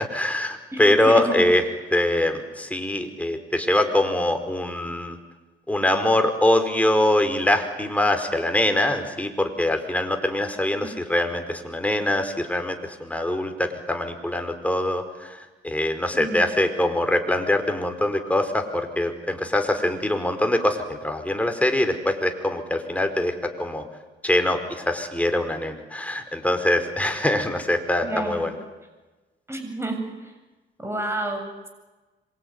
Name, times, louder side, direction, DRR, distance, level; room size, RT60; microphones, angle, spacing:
voice 1, 0.0-1.6 1.9-5.2 5.7-23.8 24.2-28.5, left 1 dB, 5° left, 5 dB, 4.8 m, -23 dB
voice 2, 0.7-1.4 10.8-10.9 16.1-16.4 28.0-28.5 29.5-30.3 30.8-31.7, right 2 dB, 15° right, 5 dB, 7.7 m, -30 dB
26.5 x 23.5 x 9.6 m, 1.2 s
cardioid pair, 90°, 20 cm